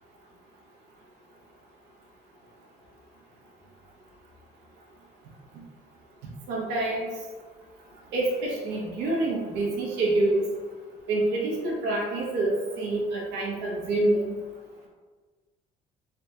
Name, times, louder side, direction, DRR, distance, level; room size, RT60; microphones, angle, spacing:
voice 1, 6.5-7.1 8.1-10.5 11.1-14.4, right 2 dB, 90° right, -3 dB, 0.7 m, -26 dB
3.5 x 2.1 x 2.7 m, 1.4 s
cardioid pair, 110°, 17 cm